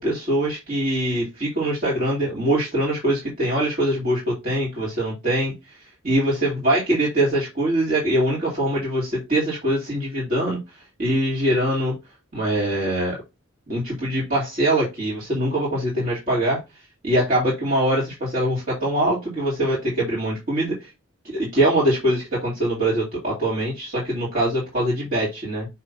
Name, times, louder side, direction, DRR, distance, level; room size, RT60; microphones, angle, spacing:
voice 1, 0.0-11.9 12.3-13.2 13.7-20.9 21.2-25.7, right 1 dB, 45° right, -7 dB, 2.5 m, -23 dB
5.6 x 3.0 x 5.5 m, 0.24 s
head